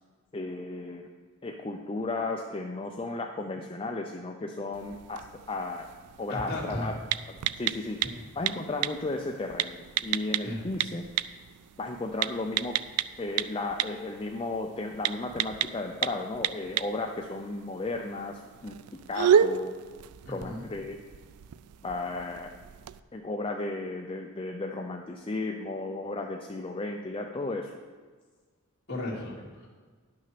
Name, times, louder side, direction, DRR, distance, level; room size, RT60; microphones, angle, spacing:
voice 1, 0.3-1.1 1.4-5.9 6.2-7.0 7.3-11.0 11.8-12.8 13.2-18.7 19.1-19.7 20.3-21.0 21.8-22.5 23.1-27.7, left 2 dB, 25° left, 2 dB, 0.5 m, -34 dB
sound 1, 4.7-23.0, right 9 dB, 90° right, 0.4 m, -32 dB
voice 2, 6.3-6.9 10.4-10.6 20.2-20.7 28.9-29.7, left 1 dB, 50° left, -5 dB, 2.7 m, -35 dB
11.0 x 6.2 x 5.9 m, 1.5 s
head